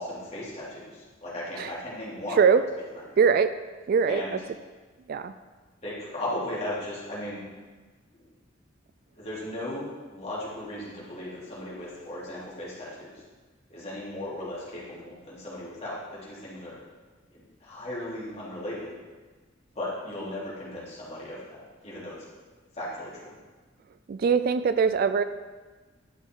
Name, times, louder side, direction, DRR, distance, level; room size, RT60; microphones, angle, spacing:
voice 1, 0.0-2.4 4.1-4.3 5.8-7.5 8.1-8.3 9.2-13.2 13.7-16.8 17.3-18.9 19.7-22.1 22.7-23.3, left 1 dB, 35° left, -7 dB, 3.0 m, -36 dB
voice 2, 3.2-3.5 3.9-4.4 5.1-5.3 24.1-25.2, right 6 dB, 50° right, 12 dB, 0.3 m, -22 dB
11.5 x 6.2 x 3.8 m, 1.3 s
head